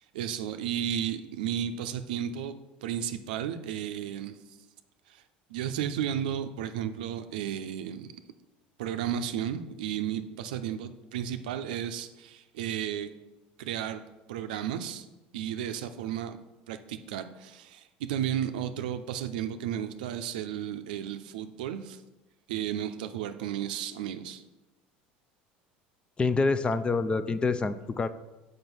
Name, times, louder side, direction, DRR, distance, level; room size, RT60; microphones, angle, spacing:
voice 1, 0.1-2.5 2.8-4.4 5.1-5.2 5.5-8.1 8.8-13.1 13.6-14.0 14.3-15.1 15.3-16.4 16.7-22.0 22.5-24.4, right 9 dB, 85° right, 9 dB, 0.5 m, -33 dB
voice 2, 26.2-28.1, left 4 dB, 20° left, 13 dB, 0.5 m, -26 dB
6.1 x 5.2 x 5.4 m, 1.1 s
supercardioid pair, 90°, 5 cm